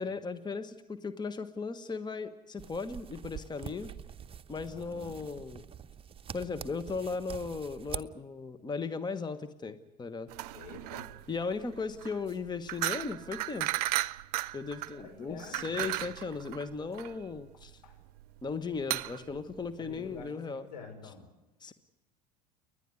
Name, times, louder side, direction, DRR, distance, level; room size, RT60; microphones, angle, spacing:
voice 1, 0.0-3.9 4.5-5.6 6.3-10.3 11.3-13.7 14.5-17.8 18.4-20.6 21.6-21.7, left 4 dB, 20° left, 11 dB, 1.3 m, -37 dB
sound 1, 2.6-8.0, right 7 dB, 25° right, 0.9 m, -45 dB
voice 2, 4.6-5.2 10.5-11.2 14.9-15.8 17.5-18.0 19.8-21.2, left 5 dB, 80° left, 3 dB, 5.8 m, -48 dB
sound 2, 10.3-20.3, right 16 dB, 65° right, 0.6 m, -36 dB
30.0 x 11.0 x 9.7 m, 1.0 s
hypercardioid pair, 75°, 21 cm